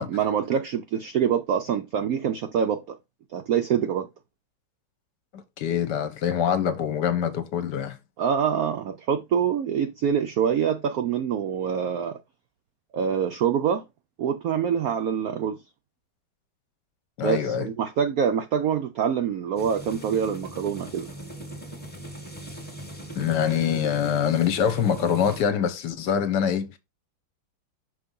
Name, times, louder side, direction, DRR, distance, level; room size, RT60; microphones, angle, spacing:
voice 1, 0.0-3.0 3.3-4.1 8.2-12.2 12.9-13.8 14.2-15.6 17.2-21.1, right 8 dB, 80° right, 0.8 m, -25 dB
voice 2, 5.3-8.0 17.2-17.7 23.2-26.8, left 8 dB, 65° left, 1.3 m, -25 dB
sound 1, 19.6-25.4, right 1 dB, 5° left, 1.0 m, -40 dB
6.0 x 3.2 x 5.3 m
omnidirectional pair, 2.2 m